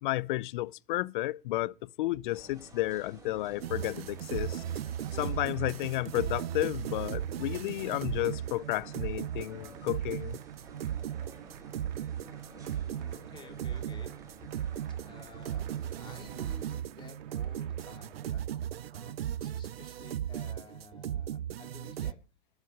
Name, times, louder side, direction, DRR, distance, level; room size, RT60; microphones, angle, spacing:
voice 1, 0.0-4.6 5.1-10.4, left 17 dB, 55° left, 0.6 m, -32 dB
sound 1, 2.2-16.7, right 2 dB, 10° right, 5.5 m, -53 dB
Cheering / Applause, 3.5-18.3, right 13 dB, 45° right, 2.1 m, -59 dB
sound 2, 3.6-22.1, right 10 dB, 90° right, 0.5 m, -37 dB
voice 2, 12.2-14.1 14.9-15.7 16.0-22.2, left 4 dB, 15° left, 2.8 m, -53 dB
12.0 x 8.1 x 5.2 m
hypercardioid pair, 120°, 29 cm